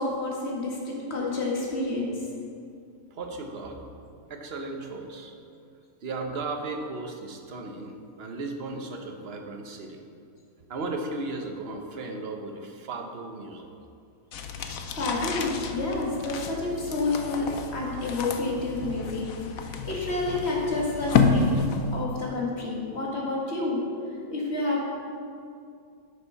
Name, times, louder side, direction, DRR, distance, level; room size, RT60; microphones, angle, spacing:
voice 1, 0.0-2.2 14.6-14.7 15.0-19.3 19.6-21.5 21.9-23.8 24.3-24.9, left 2 dB, 40° left, -3 dB, 2.1 m, -29 dB
voice 2, 3.1-3.8 4.3-5.3 6.0-10.0 10.7-13.7, right 3 dB, 45° right, 3 dB, 1.0 m, -35 dB
sound 1, 14.3-22.0, left 4 dB, 65° left, 1.1 m, -29 dB
9.8 x 6.5 x 5.6 m, 2.4 s
omnidirectional pair, 1.7 m